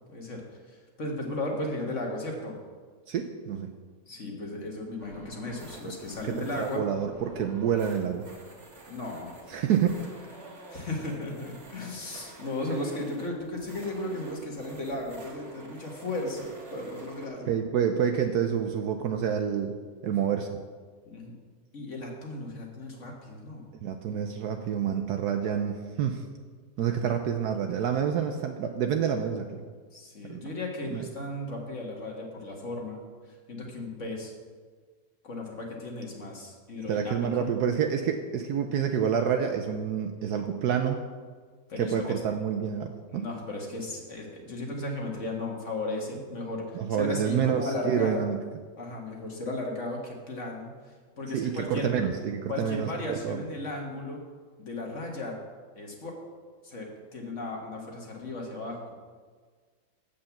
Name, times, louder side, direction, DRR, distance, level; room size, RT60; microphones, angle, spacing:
voice 1, 0.1-2.6 4.1-6.8 8.9-9.6 10.7-17.6 20.0-20.2 21.1-21.3 21.7-23.6 29.9-33.0 33.3-34.3 35.2-37.5 41.7-42.2 43.1-48.3 48.8-52.0 52.5-54.2 54.6-55.4 55.8-56.2 56.6-58.9, left 2 dB, 45° left, 0 dB, 1.8 m, -35 dB
voice 2, 3.1-3.7 6.4-8.2 9.5-10.0 17.5-19.7 20.0-20.6 23.8-26.2 26.8-29.6 30.2-30.4 30.9-31.0 36.9-41.0 41.8-43.3 46.7-48.4 51.3-53.4, right 8 dB, 75° right, 5 dB, 1.1 m, -28 dB
sound 1, 5.0-17.3, right 2 dB, 40° right, 1.8 m, -48 dB
7.9 x 6.9 x 7.1 m, 1.6 s
omnidirectional pair, 1.8 m